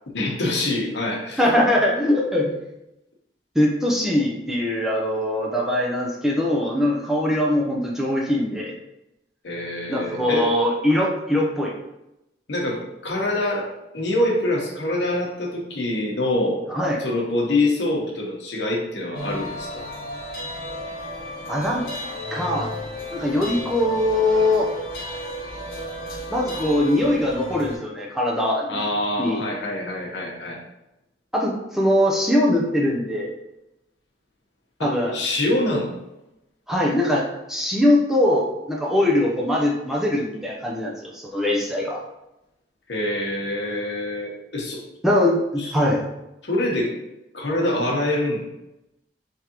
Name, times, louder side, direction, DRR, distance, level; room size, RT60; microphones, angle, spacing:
voice 1, 0.1-1.4 9.4-10.5 12.5-16.6 17.0-19.8 28.7-30.6 34.8-35.9 42.9-44.8 45.6-45.7 46.4-46.9 47.3-48.5, left 1 dB, 85° left, -1 dB, 0.9 m, -25 dB
voice 2, 1.4-2.5 3.5-8.7 9.9-11.7 16.7-17.0 21.5-21.8 22.3-22.7 23.1-24.7 26.3-28.8 29.2-29.4 31.3-33.3 34.8-35.1 36.7-42.0 45.0-46.0, left 1 dB, ahead, -3 dB, 0.5 m, -21 dB
sound 1, 19.1-27.8, left 1 dB, 50° left, 0.7 m, -33 dB
3.6 x 3.2 x 2.9 m, 0.90 s
head